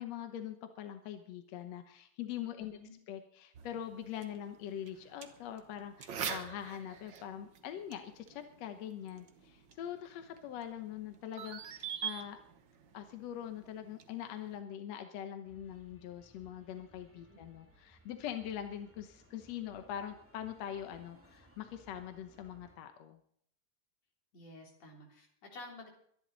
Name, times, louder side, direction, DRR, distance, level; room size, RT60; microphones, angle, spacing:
voice 1, 0.0-2.8 3.1-12.4 12.9-23.2, left 10 dB, 65° left, 7 dB, 1.7 m, -43 dB
voice 2, 2.6-2.9 17.3-17.4 24.3-25.9, left 2 dB, 50° left, 0 dB, 4.4 m, -51 dB
sound 1, 3.5-14.6, right 7 dB, 80° right, 1.0 m, -46 dB
sound 2, 15.4-22.8, right 1 dB, 5° right, 1.6 m, -63 dB
23.5 x 11.0 x 4.0 m, 0.66 s
omnidirectional pair, 4.0 m